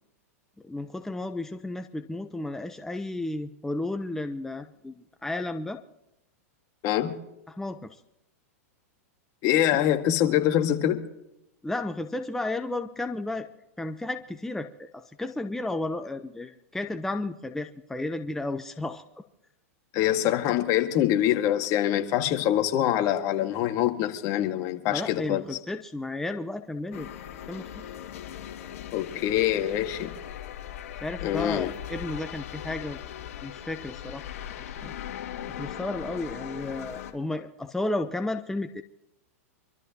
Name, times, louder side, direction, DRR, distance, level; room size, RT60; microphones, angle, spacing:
voice 1, 0.6-5.8 7.5-8.0 11.6-13.5 13.8-19.0 24.9-27.1 27.5-27.8 31.0-33.0 33.4-34.3 34.6-34.9 35.5-38.8, left 2 dB, 5° left, 0.8 m, -33 dB
voice 2, 6.8-7.2 9.4-11.0 19.9-25.4 28.9-30.1 31.2-31.7, left 12 dB, 45° left, 1.9 m, -24 dB
sound 1, 26.9-37.1, left 10 dB, 65° left, 2.2 m, -39 dB
26.0 x 13.0 x 2.9 m
hypercardioid pair, 110°, 8 cm